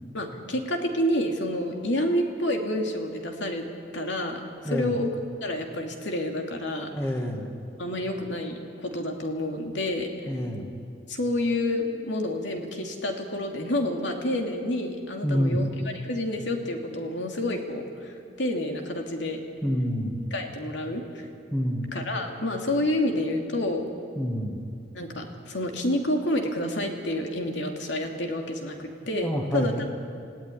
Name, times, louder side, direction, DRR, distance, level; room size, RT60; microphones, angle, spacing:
voice 1, 0.1-3.7 3.9-5.1 5.4-6.9 7.8-10.3 11.1-15.7 15.9-19.4 20.3-21.3 21.9-23.9 24.9-29.9, left 1 dB, 70° left, 2 dB, 2.8 m, -29 dB
voice 2, 4.6-5.0 6.9-7.5 10.3-10.7 15.2-15.6 19.6-20.1 21.5-21.9 24.2-24.6 29.2-29.8, equal, 15° left, 2 dB, 2.1 m, -27 dB
28.5 x 16.5 x 10.0 m, 2.5 s
head